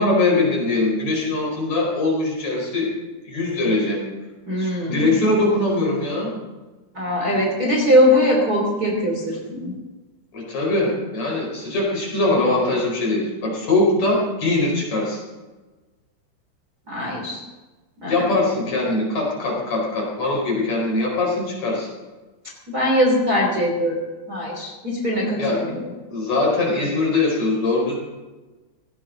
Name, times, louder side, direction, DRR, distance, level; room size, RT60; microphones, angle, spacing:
voice 1, 0.0-2.9 3.2-4.0 4.6-6.4 10.3-15.2 18.1-21.9 25.4-25.6 26.1-27.9, left 2 dB, 40° left, -2 dB, 5.9 m, -22 dB
voice 2, 4.5-5.2 6.9-9.7 16.9-17.4 18.0-18.3 22.7-24.0 24.3-25.8, equal, 25° right, -1 dB, 3.1 m, -21 dB
18.5 x 17.0 x 3.9 m, 1.2 s
omnidirectional pair, 4.8 m